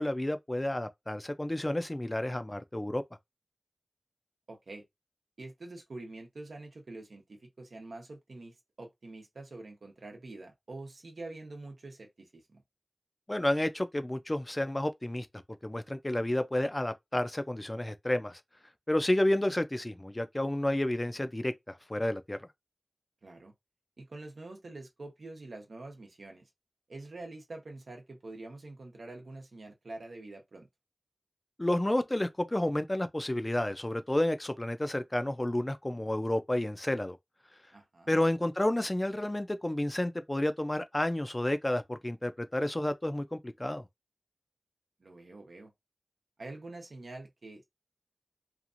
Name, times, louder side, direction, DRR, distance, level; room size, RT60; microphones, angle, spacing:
voice 1, 0.0-3.0 13.3-15.3 15.6-18.4 18.9-22.5 31.6-37.2 38.1-43.8, left 1 dB, 20° left, 0.4 m, -30 dB
voice 2, 4.5-4.8 5.4-12.6 23.2-23.5 24.0-26.5 26.9-30.7 37.7-38.2 45.0-45.7 46.4-47.6, right 2 dB, 90° right, 0.8 m, -46 dB
2.8 x 2.5 x 2.5 m
wide cardioid pair, 75°, 0 cm